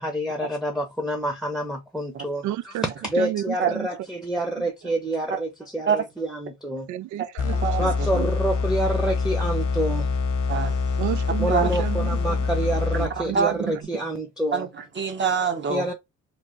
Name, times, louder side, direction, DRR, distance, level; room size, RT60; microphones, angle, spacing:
voice 1, 0.0-6.9 7.8-10.1 11.4-14.7 15.7-15.9, right 1 dB, ahead, 0.8 m, -28 dB
voice 2, 2.4-2.9 3.2-3.9 4.6-4.7 6.9-8.3 11.0-13.4, right 13 dB, 75° right, 0.4 m, -32 dB
sound 1, 7.4-13.4, left 4 dB, 70° left, 1.0 m, -25 dB
voice 3, 10.5-10.8 11.5-11.8 13.3-13.8 14.5-15.9, right 6 dB, 40° right, 1.0 m, -25 dB
3.3 x 2.0 x 3.9 m
cardioid pair, 90°, 30 cm